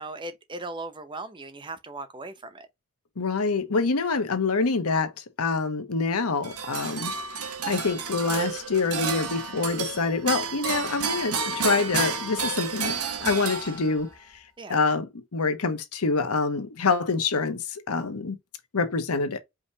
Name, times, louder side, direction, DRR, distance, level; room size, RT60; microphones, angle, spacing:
voice 1, 0.0-2.7 14.6-14.8, right 2 dB, 20° right, 0.6 m, -38 dB
voice 2, 3.2-5.1 5.4-7.1 7.7-14.1 14.7-18.4 18.7-19.4, left 4 dB, 80° left, 0.9 m, -26 dB
sound 1, 6.4-14.1, right 5 dB, 80° right, 1.1 m, -31 dB
5.0 x 3.0 x 2.7 m
head